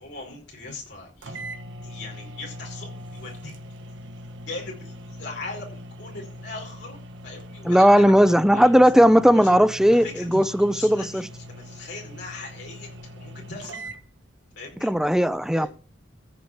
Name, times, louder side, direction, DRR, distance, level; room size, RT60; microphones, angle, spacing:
voice 1, 0.0-1.4 1.8-3.5 4.5-8.7 9.3-9.6 9.9-13.9 14.5-14.9 15.6-15.7, left 3 dB, 60° left, 5.1 m, -40 dB
sound 1, 0.9-1.0 1.2-14.0, equal, 80° right, 1.4 m, -41 dB
voice 2, 7.6-11.3 14.8-15.7, equal, 5° right, 0.7 m, -17 dB
14.5 x 5.2 x 8.1 m
head